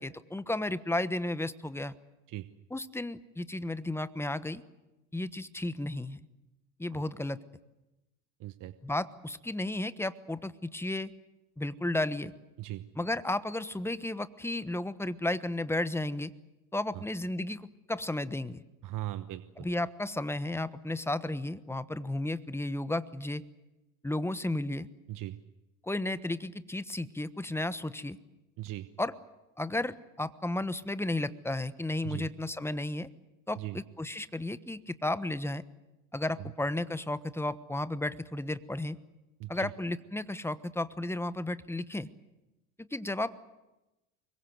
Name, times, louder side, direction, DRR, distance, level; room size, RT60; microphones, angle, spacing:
voice 1, 0.0-1.9 2.7-4.6 5.1-6.2 6.8-7.4 8.8-11.1 11.6-12.3 13.0-16.3 16.7-18.6 19.6-23.4 24.0-24.9 25.8-28.2 29.0-29.1 29.6-33.1 33.5-35.6 36.1-39.0 39.5-42.1 42.8-43.5, left 1 dB, 5° left, 14 dB, 1.2 m, -33 dB
voice 2, 8.4-8.7 12.6-12.8 16.9-17.0 18.8-19.7 25.1-25.4 28.6-28.9 32.0-32.3 33.6-33.8 36.4-36.5 39.4-39.7, right 15 dB, 50° right, 12 dB, 1.1 m, -39 dB
25.0 x 22.5 x 8.0 m, 1.0 s
hypercardioid pair, 75°, 42 cm